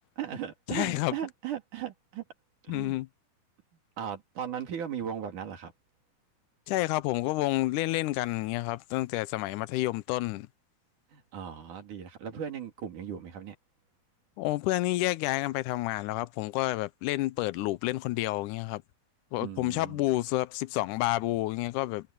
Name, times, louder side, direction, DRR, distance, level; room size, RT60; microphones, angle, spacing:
voice 1, 0.2-2.2 2.6-3.0 4.0-5.7 11.1-13.6 19.4-20.1, right 9 dB, 80° right, 4.3 m, -37 dB
voice 2, 0.7-1.1 2.7-3.1 6.7-10.5 14.4-18.8 19.3-22.1, left 18 dB, 85° left, 2.2 m, -29 dB
omnidirectional pair, 3.5 m